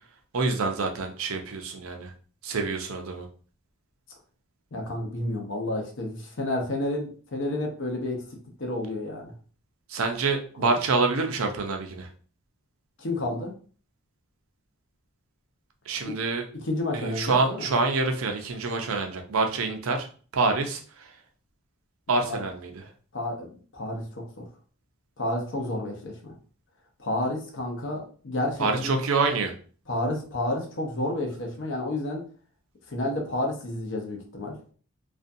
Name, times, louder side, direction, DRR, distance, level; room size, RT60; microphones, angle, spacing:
voice 1, 0.3-2.1 2.4-3.3 9.9-12.1 15.9-16.4 16.9-20.1 20.3-20.8 22.1-22.7 28.6-29.5, right 3 dB, 70° right, 4 dB, 0.5 m, -26 dB
voice 2, 4.7-8.2 8.6-9.3 10.6-10.7 13.0-13.5 16.0-16.2 16.5-17.7 22.2-22.4 23.1-24.0 24.4-24.5 25.2-26.4 27.0-28.9 29.9-32.2 32.9-34.6, left 1 dB, 55° left, 1 dB, 0.6 m, -30 dB
2.5 x 2.2 x 2.6 m, 0.41 s
head